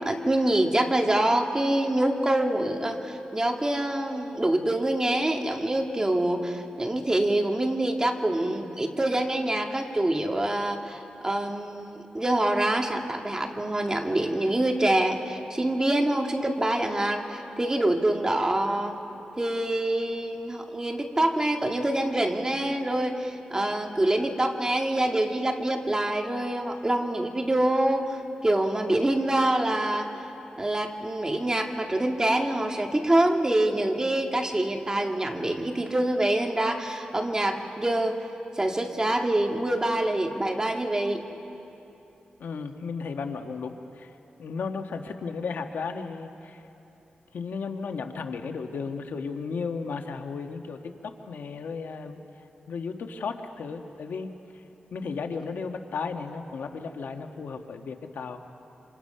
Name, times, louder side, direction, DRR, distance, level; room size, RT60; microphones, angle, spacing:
voice 1, 0.1-19.0 19.4-30.1 30.6-38.2 38.6-41.2, right 1 dB, 20° right, 3 dB, 2.0 m, -25 dB
voice 2, 42.4-44.1 44.4-46.6 47.3-52.2 52.7-54.3 54.9-58.4, left 5 dB, 85° left, 5 dB, 1.4 m, -34 dB
28.0 x 26.5 x 5.6 m, 2.9 s
cardioid pair, 80°, 3 cm